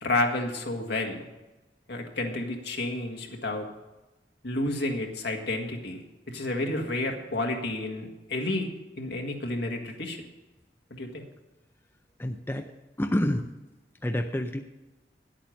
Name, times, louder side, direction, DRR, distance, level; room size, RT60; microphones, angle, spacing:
voice 1, 0.0-1.2 1.9-3.7 4.4-8.7 9.0-10.2 10.9-11.2, left 2 dB, 65° left, 2 dB, 1.8 m, -30 dB
voice 2, 12.2-12.7 13.0-13.5 14.0-14.6, left 1 dB, 10° left, 5 dB, 0.5 m, -28 dB
10.5 x 8.7 x 6.4 m, 1.1 s
head